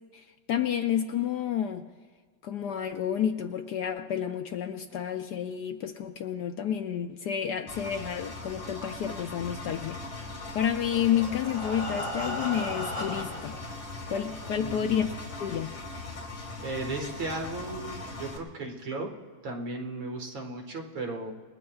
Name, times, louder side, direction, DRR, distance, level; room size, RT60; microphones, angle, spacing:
voice 1, 0.1-1.9 2.4-10.0 10.5-13.6 14.1-15.1 15.4-15.7, left 9 dB, 70° left, 6 dB, 1.1 m, -30 dB
Engine, 7.7-18.4, left 2 dB, 35° left, 2.0 m, -40 dB
Breathing, 10.6-13.6 14.3-14.4 14.8-14.9 15.3-15.4, left 1 dB, 50° left, 4.5 m, -36 dB
voice 2, 14.6-14.9 16.6-19.1 19.4-21.3, right 2 dB, 75° right, 1 dB, 2.5 m, -35 dB
28.0 x 20.5 x 2.4 m, 1.5 s
omnidirectional pair, 2.2 m